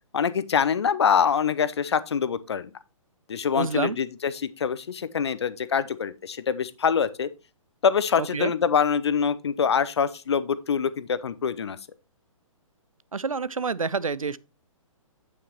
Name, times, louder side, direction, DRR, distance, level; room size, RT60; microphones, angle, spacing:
voice 1, 0.1-2.7 3.3-7.3 7.8-11.8, left 7 dB, 50° left, 0.8 m, -25 dB
voice 2, 3.6-4.0 8.2-8.5 13.1-14.4, right 4 dB, 75° right, 0.5 m, -28 dB
8.7 x 8.4 x 2.9 m
figure-of-eight pair, 130°, 18 cm